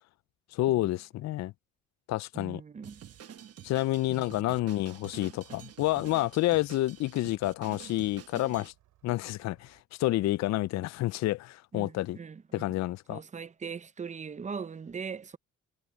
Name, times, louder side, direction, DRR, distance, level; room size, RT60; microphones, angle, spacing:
voice 1, 0.5-1.5 2.1-2.6 3.6-8.7 9.0-12.2 12.5-13.2, left 16 dB, 65° left, 0.4 m, -29 dB
voice 2, 2.3-3.0 4.1-4.4 11.7-12.8 13.1-15.4, right 6 dB, 25° right, 0.6 m, -40 dB
Drum kit, 2.8-8.7, right 9 dB, 50° right, 1.1 m, -49 dB
Engine starting, 4.5-9.8, right 15 dB, 90° right, 7.5 m, -67 dB
cardioid pair, 90°, 30 cm